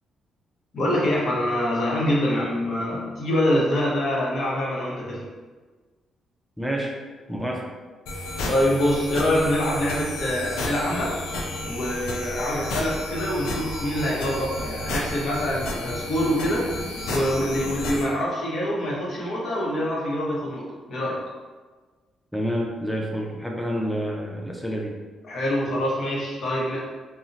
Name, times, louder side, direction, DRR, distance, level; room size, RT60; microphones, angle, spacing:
voice 1, 0.7-5.2 8.5-11.2 11.6-16.7 17.1-21.2 25.3-26.8, left 1 dB, 60° left, -4 dB, 0.7 m, -25 dB
voice 2, 6.6-6.9 7.3-7.6 22.3-24.9, equal, 5° right, -1 dB, 0.4 m, -28 dB
sound 1, 8.1-18.0, left 1 dB, 90° left, 0.3 m, -31 dB
2.7 x 2.0 x 2.5 m, 1.4 s
cardioid pair, 75°, 0 cm